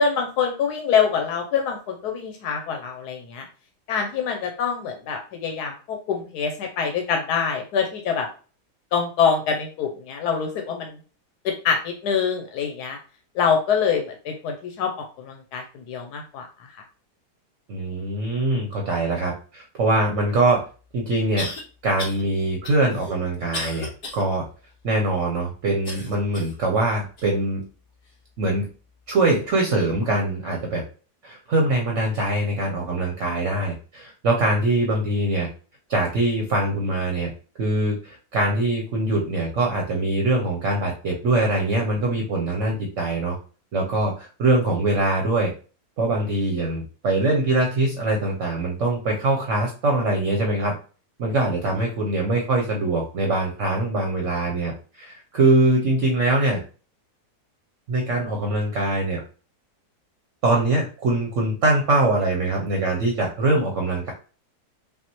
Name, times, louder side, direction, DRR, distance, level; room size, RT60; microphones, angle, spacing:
voice 1, 0.0-3.4 3.9-8.3 8.9-11.0 11.4-13.0 13.3-16.5, left 6 dB, 90° left, 3 dB, 1.2 m, -25 dB
voice 2, 17.7-20.7 20.9-21.5 21.8-24.4 24.8-27.6 28.4-28.7 29.1-30.8 31.2-35.5 35.9-37.3 37.6-43.4 43.7-45.5 46.0-50.8 51.2-56.6 57.9-59.2 60.4-64.1, right 2 dB, 60° right, 0 dB, 1.0 m, -23 dB
sound 1, 20.4-20.5 21.4-21.6 22.0-22.2 22.6-24.2 24.7-24.8 25.8-26.6 27.2-27.3 28.0-28.1, left 2 dB, 40° left, 1.7 m, -34 dB
5.5 x 2.5 x 3.0 m, 0.37 s
omnidirectional pair, 1.7 m